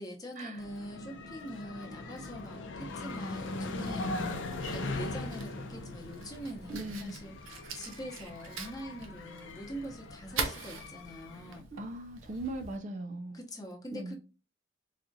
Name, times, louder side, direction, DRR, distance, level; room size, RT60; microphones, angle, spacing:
voice 1, 0.0-4.3 4.7-11.7 13.3-14.2, equal, 20° left, 0.7 m, -44 dB
sound 1, 0.6-11.6, left 2 dB, 70° left, 0.5 m, -40 dB
Fire, 4.0-12.8, right 4 dB, 85° right, 0.6 m, -43 dB
voice 2, 6.7-7.2 11.7-13.4 13.9-14.2, right 2 dB, 40° right, 0.4 m, -39 dB
4.1 x 2.4 x 2.6 m
head